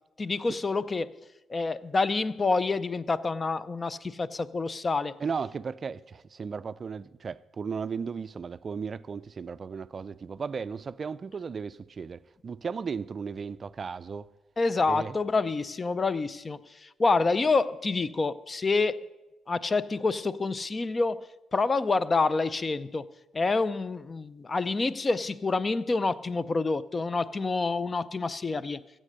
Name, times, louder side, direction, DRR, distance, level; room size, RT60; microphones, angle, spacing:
voice 1, 0.2-1.1 1.5-5.2 14.6-19.0 19.5-23.1 23.3-28.8, left 3 dB, 30° left, 0.5 m, -27 dB
voice 2, 5.2-14.3 14.9-15.2, right 5 dB, 40° right, 0.4 m, -35 dB
15.0 x 7.6 x 6.4 m
cardioid pair, 90°, 0 cm